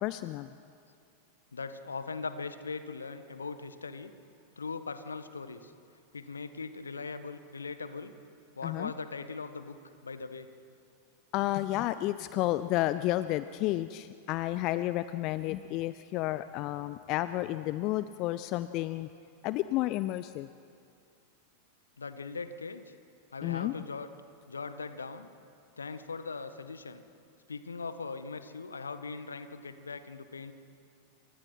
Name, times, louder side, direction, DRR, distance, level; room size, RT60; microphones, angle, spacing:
voice 1, 0.0-0.5 8.6-8.9 11.3-19.1 19.4-20.5 23.4-23.7, left 16 dB, 40° left, 14 dB, 0.6 m, -31 dB
voice 2, 1.5-4.1 4.6-5.7 6.1-8.1 8.5-9.8 10.0-10.5 22.0-22.9 23.3-24.1 24.5-25.3 25.8-27.0 27.5-30.5, left 4 dB, 75° left, 11 dB, 1.5 m, -40 dB
28.5 x 24.0 x 5.8 m, 2.4 s
figure-of-eight pair, 90°, 0 cm